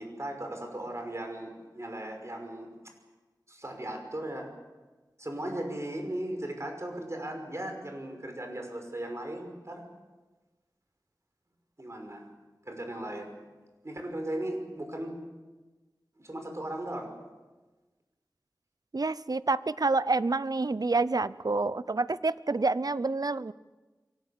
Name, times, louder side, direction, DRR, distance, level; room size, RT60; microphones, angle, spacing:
voice 1, 0.0-2.7 3.5-4.5 5.2-9.8 11.8-12.2 12.7-13.3 13.8-15.1 16.2-17.1, right 1 dB, 40° right, 4 dB, 5.6 m, -37 dB
voice 2, 18.9-23.5, right 3 dB, 60° right, 17 dB, 0.7 m, -28 dB
23.5 x 18.5 x 8.5 m, 1.2 s
wide cardioid pair, 50°, 7 cm